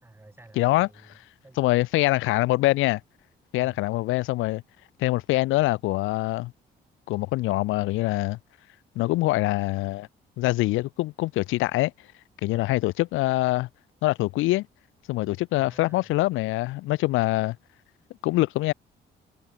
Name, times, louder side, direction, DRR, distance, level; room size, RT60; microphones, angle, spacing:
voice 1, 0.0-1.9 3.6-3.8 12.5-12.8 15.5-16.2, right 2 dB, 10° right, 4.6 m, -52 dB
voice 2, 0.6-0.9 1.6-3.0 3.5-4.6 5.0-6.5 7.1-8.4 9.0-10.1 10.4-11.9 12.4-13.7 14.0-14.7 15.1-17.6 18.2-18.7, left 18 dB, 85° left, 0.4 m, -24 dB
cardioid pair, 90°, 20 cm